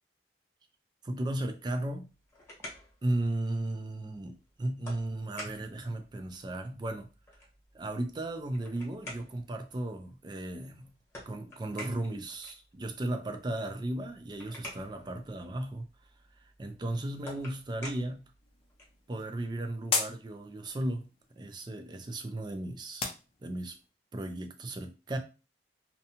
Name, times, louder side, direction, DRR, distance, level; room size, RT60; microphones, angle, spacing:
voice 1, 1.0-2.1 3.0-7.1 7.7-10.9 11.3-15.9 16.4-18.3 19.1-21.1 21.4-23.1 23.4-23.8 24.1-25.2, right 1 dB, 25° right, 0.4 m, -35 dB
sound 1, 2.0-19.1, left 1 dB, 15° left, 1.0 m, -50 dB
sound 2, 18.4-23.9, left 4 dB, 30° left, 0.5 m, -39 dB
2.7 x 2.2 x 2.8 m
head